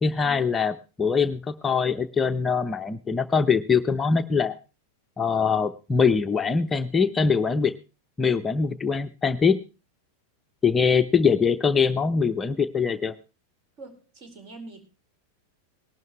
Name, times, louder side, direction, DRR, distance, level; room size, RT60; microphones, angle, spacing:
voice 1, 0.0-4.6 5.2-7.7 8.2-9.6 10.6-13.1, left 5 dB, 15° left, 8 dB, 0.6 m, -23 dB
voice 2, 13.8-14.9, right 3 dB, 40° right, 7 dB, 4.4 m, -44 dB
19.0 x 12.0 x 3.1 m, 0.31 s
figure-of-eight pair, 90°, 0 cm